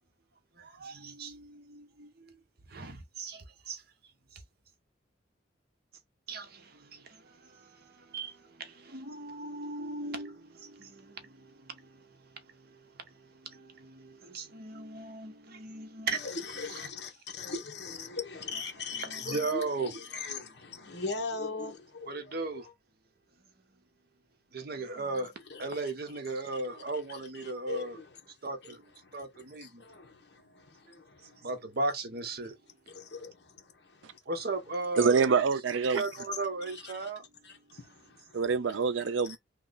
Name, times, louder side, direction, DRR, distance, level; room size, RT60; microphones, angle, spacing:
voice 1, 0.6-2.3 2.7-3.8 4.3-4.4 6.3-16.2 19.0-19.9 22.1-22.7 24.5-25.3 25.6-28.0 28.4-28.8 29.1-29.8 31.4-32.5 34.3-35.3 35.9-37.2, right 3 dB, 55° right, 0.8 m, -37 dB
voice 2, 16.1-22.6 25.5-25.8 26.4-26.8 27.1-28.1 28.6-28.7 29.0-31.5 32.9-34.2 35.9-36.0 36.7-37.1 37.4-38.4 39.3-39.4, left 4 dB, 60° left, 1.0 m, -41 dB
voice 3, 35.0-36.0 38.3-39.4, right 5 dB, 80° right, 0.5 m, -25 dB
3.0 x 2.3 x 3.8 m
head